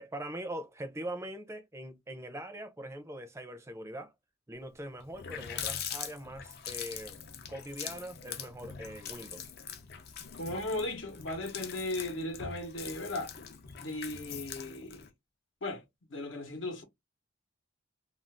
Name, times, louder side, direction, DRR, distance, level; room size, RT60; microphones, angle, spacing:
voice 1, 0.0-4.1 4.5-7.2 7.5-9.4, right 1 dB, 15° right, 0.5 m, -42 dB
Water tap faucet, 4.6-4.7 5.0-15.1, left 8 dB, 55° left, 0.5 m, -43 dB
voice 2, 10.3-13.3 13.8-15.1 15.6-15.8 16.1-16.8, left 2 dB, 70° left, 0.9 m, -36 dB
2.5 x 2.3 x 3.4 m
head